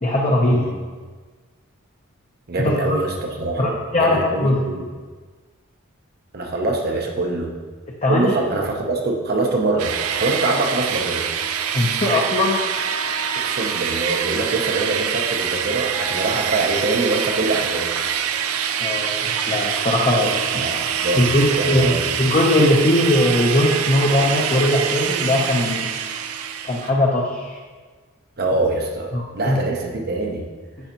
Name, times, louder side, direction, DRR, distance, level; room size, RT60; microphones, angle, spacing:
voice 1, 0.0-0.6 2.6-3.0 3.6-4.5 8.0-8.4 11.7-12.6 18.8-20.4 21.1-25.9 26.6-27.6 29.1-29.6, left 1 dB, 30° left, -3 dB, 0.7 m, -19 dB
voice 2, 2.5-4.9 6.3-7.5 8.1-11.2 13.3-17.9 20.2-22.1 28.4-30.5, right 2 dB, 45° right, 2 dB, 0.7 m, -24 dB
sound 1, 9.8-26.9, right 8 dB, 85° right, 0.5 m, -25 dB
9.0 x 5.5 x 2.9 m, 1.4 s
head